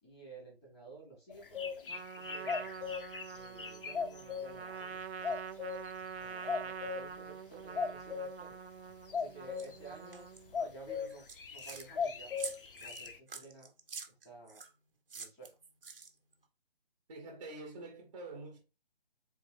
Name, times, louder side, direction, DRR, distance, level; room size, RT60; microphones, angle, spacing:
voice 1, 0.0-2.7 3.3-5.4 6.2-8.6 9.1-10.3 10.5-12.3 12.8-13.7 14.1-14.6 15.1-15.5, right 3 dB, 5° left, 0.6 m, -53 dB
sound 1, 1.3-4.5 5.2-5.9 6.5-7.0 7.8-8.3 9.1-9.8 10.5-11.1 11.4-13.2, left 6 dB, 60° left, 0.6 m, -37 dB
Trumpet, 1.9-10.6, right 6 dB, 90° right, 0.5 m, -45 dB
sound 2, 9.6-9.7 10.1-10.4 11.1-11.9 12.4-14.7 15.1-16.3, right 5 dB, 60° right, 0.8 m, -46 dB
voice 2, 17.1-18.6, right 2 dB, 30° right, 0.9 m, -46 dB
3.6 x 3.2 x 3.2 m
figure-of-eight pair, 150°, 31 cm